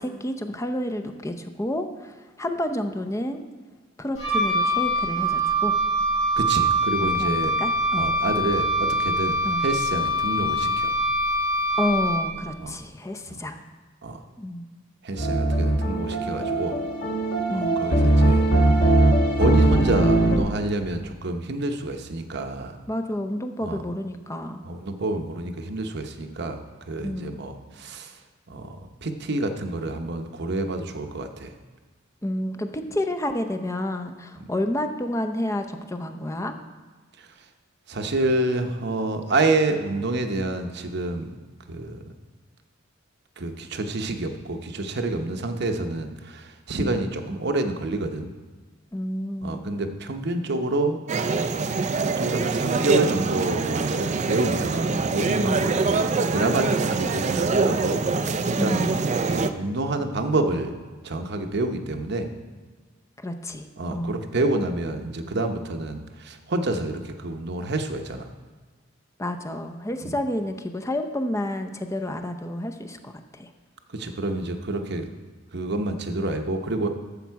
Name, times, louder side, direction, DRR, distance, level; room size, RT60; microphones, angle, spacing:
voice 1, 0.0-3.4 4.0-5.8 7.0-8.2 9.4-9.7 11.8-13.6 14.4-14.7 17.5-17.8 22.9-24.7 27.0-27.5 32.2-36.5 46.8-47.0 48.9-49.7 55.4-55.7 58.6-59.1 63.2-63.7 63.9-64.2 69.2-73.5, left 1 dB, 15° left, 7 dB, 0.6 m, -30 dB
Wind instrument woodwind instrument, 4.1-12.5, right 1 dB, 75° left, 3.3 m, -24 dB
voice 2, 6.4-7.6 7.9-10.9 12.6-12.8 13.3-13.4 14.0-14.2 15.0-16.8 17.5-18.4 19.4-22.8 23.6-23.8 24.6-28.1 28.5-31.5 37.2-37.3 37.9-41.3 41.7-42.0 43.4-48.3 49.4-51.0 51.3-58.1 58.5-58.8 59.3-60.7 61.0-62.3 63.8-68.3 70.0-70.1 73.9-75.1 75.5-76.9, right 2 dB, 55° right, 6 dB, 0.9 m, -28 dB
sound 1, 15.2-20.4, right 2 dB, 55° left, 1.5 m, -20 dB
sound 2, 51.1-59.5, right 4 dB, 35° right, 0.4 m, -24 dB
12.0 x 7.3 x 4.7 m, 1.4 s
head